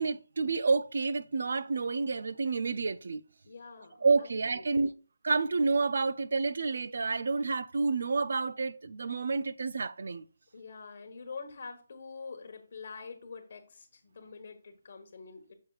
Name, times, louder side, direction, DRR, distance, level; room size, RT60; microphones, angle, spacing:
voice 1, 0.0-3.2 4.0-4.9 5.2-10.2, right 4 dB, 55° right, 0.3 m, -29 dB
voice 2, 3.4-4.9 10.5-15.5, left 4 dB, 45° left, 1.3 m, -46 dB
6.5 x 6.3 x 2.4 m
hypercardioid pair, 175°, 0 cm